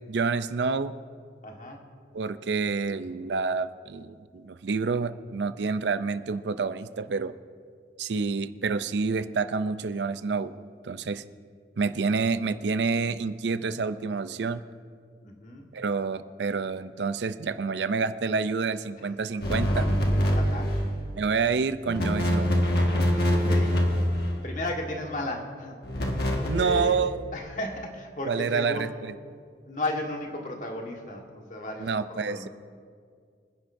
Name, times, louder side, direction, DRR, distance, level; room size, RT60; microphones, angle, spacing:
voice 1, 0.1-0.9 2.1-7.3 8.0-10.5 10.8-11.2 11.8-14.6 15.7-19.9 21.1-22.5 26.5-27.3 28.3-29.1 31.8-32.5, right 4 dB, 80° right, 12 dB, 0.5 m, -28 dB
voice 2, 1.4-1.8 15.2-15.7 20.3-20.8 23.3-23.8 24.4-25.8 26.4-27.0 27.3-28.9 29.7-32.5, left 1 dB, 45° left, 1 dB, 1.6 m, -34 dB
sound 1, 19.4-21.0 21.8-24.5 25.8-27.0, equal, 60° left, 1.7 m, -24 dB
25.0 x 10.0 x 2.7 m, 2.1 s
head